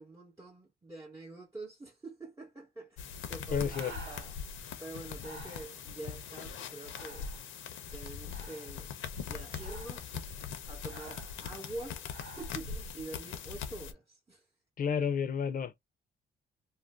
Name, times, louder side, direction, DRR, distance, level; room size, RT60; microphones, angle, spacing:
voice 1, 0.0-7.3 7.9-8.9 9.2-10.3 10.6-14.4, right 2 dB, 15° right, 0.9 m, -46 dB
sound 1, 3.0-13.9, left 6 dB, 80° left, 0.7 m, -41 dB
Breathing, 3.1-12.6, right 3 dB, 75° right, 1.2 m, -53 dB
voice 2, 3.5-3.9 14.8-15.8, left 7 dB, 45° left, 0.6 m, -31 dB
2.6 x 2.1 x 3.4 m
cardioid pair, 90°, 20 cm